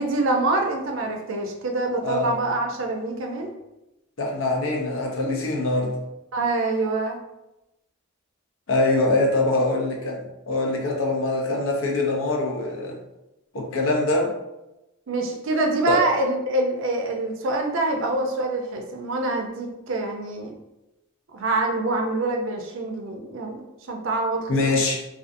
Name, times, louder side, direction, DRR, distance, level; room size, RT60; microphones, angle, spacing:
voice 1, 0.0-3.5 6.3-7.2 15.1-20.5 21.3-24.7, right 2 dB, 65° right, 2 dB, 0.5 m, -25 dB
voice 2, 2.0-2.3 4.2-6.0 8.7-13.0 13.5-14.3 15.9-16.0 24.5-25.1, left 2 dB, 70° left, 0 dB, 0.6 m, -23 dB
2.5 x 2.3 x 2.5 m, 0.95 s
head